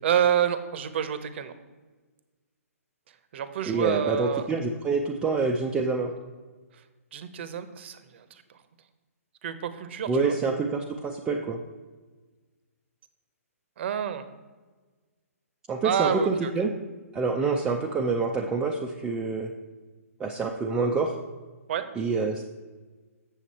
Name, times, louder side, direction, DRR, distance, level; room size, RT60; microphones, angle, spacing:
voice 1, 0.0-1.5 3.3-4.5 7.1-8.4 9.4-10.4 13.8-14.3 15.8-16.7 21.7-21.9, right 9 dB, 45° right, 12 dB, 0.7 m, -28 dB
voice 2, 3.6-6.1 10.1-11.6 15.7-16.7 17.1-19.5 20.2-21.1 22.0-22.4, right 4 dB, 10° right, 0 dB, 0.4 m, -27 dB
7.5 x 7.0 x 4.2 m, 1.3 s
hypercardioid pair, 150°, 8 cm